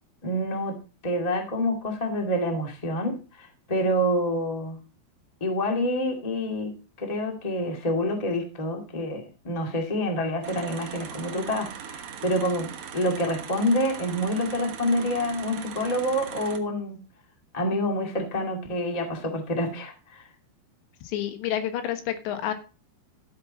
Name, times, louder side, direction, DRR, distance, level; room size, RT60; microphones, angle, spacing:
voice 1, 0.2-0.7 1.0-4.8 5.4-6.7 7.0-17.0 17.5-20.2, equal, 50° left, 2 dB, 0.4 m, -27 dB
sound 1, 10.4-16.6, right 8 dB, 90° right, 1.4 m, -40 dB
voice 2, 21.0-22.5, left 11 dB, 85° left, 8 dB, 3.6 m, -29 dB
13.0 x 8.2 x 4.0 m, 0.34 s
omnidirectional pair, 5.0 m